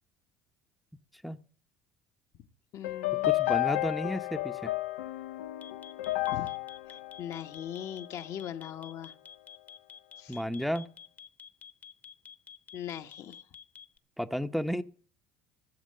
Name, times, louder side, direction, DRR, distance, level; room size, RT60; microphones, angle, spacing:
voice 1, 2.7-3.3 6.3-6.5 7.2-9.1 10.2-10.4 12.7-13.4, left 10 dB, 60° left, 1.1 m, -40 dB
sound 1, 2.8-8.2, left 18 dB, 85° left, 0.7 m, -32 dB
voice 2, 3.2-4.7 10.3-10.9 14.2-14.8, equal, ahead, 0.8 m, -32 dB
sound 2, 5.6-14.0, left 7 dB, 25° left, 1.0 m, -49 dB
16.0 x 7.4 x 6.5 m
hypercardioid pair, 70°, 6 cm